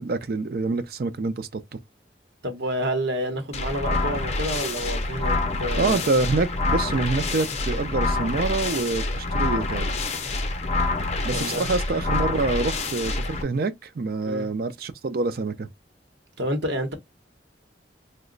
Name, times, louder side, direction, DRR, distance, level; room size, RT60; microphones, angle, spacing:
voice 1, 0.0-1.6 5.7-9.9 11.2-15.7, right 3 dB, 55° right, 0.4 m, -26 dB
voice 2, 2.4-6.0 11.3-11.6 14.2-14.5 16.4-16.9, right 1 dB, 75° right, 1.0 m, -29 dB
sound 1, 3.5-13.4, left 2 dB, 35° left, 0.6 m, -27 dB
2.9 x 2.2 x 3.8 m
head